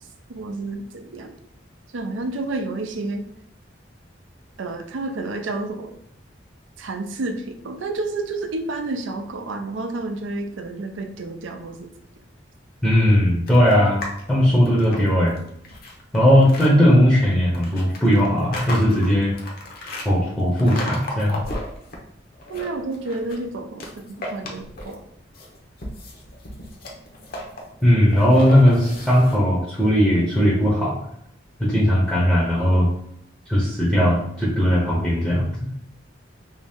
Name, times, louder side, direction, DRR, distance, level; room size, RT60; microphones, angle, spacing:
voice 1, 0.3-1.3 1.9-3.2 4.6-5.9 6.8-11.9 22.5-25.0, right 2 dB, 85° right, 5 dB, 0.5 m, -30 dB
voice 2, 12.8-14.0 14.3-15.3 16.1-19.3 20.0-21.4 27.8-31.0 31.6-32.9 33.5-35.5, equal, ahead, -6 dB, 0.6 m, -18 dB
sound 1, 13.5-14.2 14.6-16.7 17.5-20.1 20.6-22.0 22.3-23.4 23.8-25.0 25.3-29.4, left 1 dB, 50° left, 0.7 m, -34 dB
3.0 x 2.7 x 3.4 m, 0.72 s
head